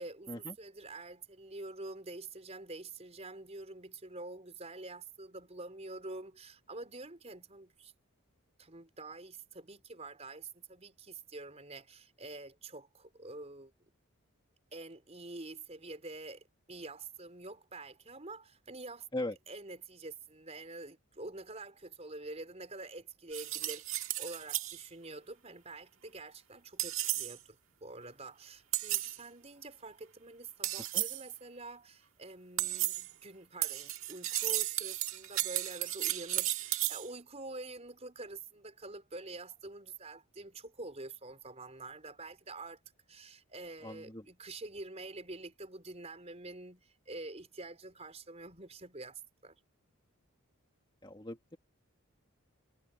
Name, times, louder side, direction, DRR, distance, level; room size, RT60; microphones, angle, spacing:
voice 1, 0.0-7.9 8.6-13.7 14.7-19.1 19.5-42.8 43.1-49.6, right 2 dB, 30° right, 4.8 m, -47 dB
sound 1, 23.3-24.8 26.8-27.4 28.7-29.2 30.6-31.3 32.6-33.1 33.6-37.1, right 14 dB, 65° right, 1.8 m, -34 dB
voice 2, 43.8-44.3 51.0-51.6, left 1 dB, 20° left, 2.0 m, -40 dB
head